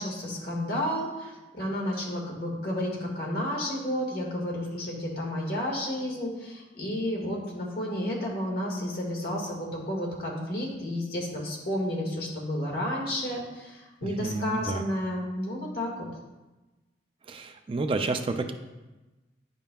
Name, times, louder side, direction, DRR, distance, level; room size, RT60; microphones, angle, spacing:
voice 1, 0.0-15.9, left 1 dB, 60° left, -2 dB, 1.7 m, -31 dB
voice 2, 14.0-14.8 17.3-18.5, right 3 dB, 30° right, 7 dB, 0.3 m, -30 dB
10.0 x 5.3 x 2.3 m, 1.1 s
head